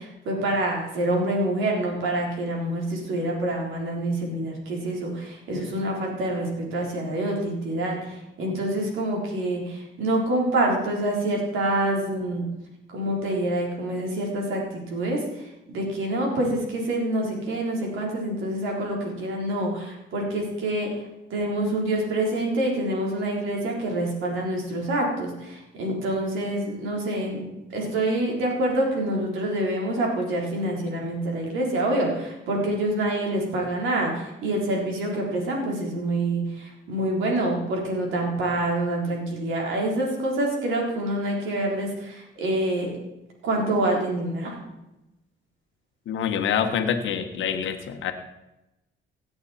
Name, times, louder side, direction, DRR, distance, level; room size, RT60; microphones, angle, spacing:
voice 1, 0.0-12.5 12.9-20.9 21.3-27.5 27.7-42.9 43.4-44.6, right 1 dB, 85° right, -1 dB, 3.9 m, -26 dB
voice 2, 46.1-48.1, left 8 dB, 75° left, 6 dB, 1.3 m, -26 dB
16.5 x 8.8 x 4.3 m, 0.93 s
cardioid pair, 90°, 20 cm